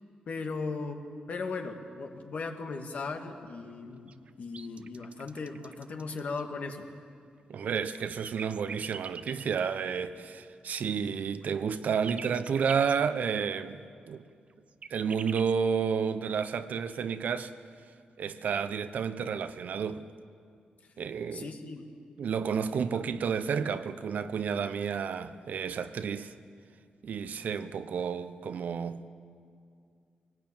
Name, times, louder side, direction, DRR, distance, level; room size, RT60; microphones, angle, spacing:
voice 1, 0.3-1.0 1.3-4.1 4.4-6.9 21.3-21.8, left 4 dB, 60° left, 2.1 m, -37 dB
sound 1, 4.1-6.4 7.7-9.6 11.1-13.0 14.5-15.5, right 5 dB, 50° right, 0.7 m, -44 dB
voice 2, 7.5-13.8 14.1-14.2 14.9-17.5 18.2-20.1 21.0-21.5 22.2-26.3 27.0-29.1, right 6 dB, 70° right, 1.0 m, -31 dB
22.5 x 19.0 x 8.9 m
wide cardioid pair, 120°, 3 cm